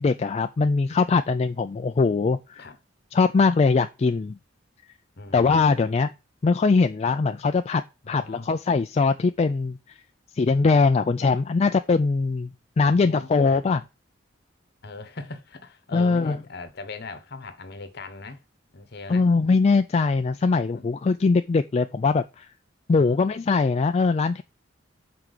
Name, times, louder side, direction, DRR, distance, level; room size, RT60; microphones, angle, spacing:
voice 1, 0.0-2.6 3.1-4.4 5.3-6.1 6.4-9.8 10.3-13.8 15.9-16.4 19.1-22.5 22.9-24.4, left 4 dB, 35° left, 0.3 m, -21 dB
voice 2, 5.2-5.6 8.0-8.5 12.8-13.8 14.8-18.4 18.7-19.3 20.7-20.8 22.9-23.2, left 3 dB, 55° left, 1.2 m, -40 dB
5.9 x 4.7 x 6.5 m
head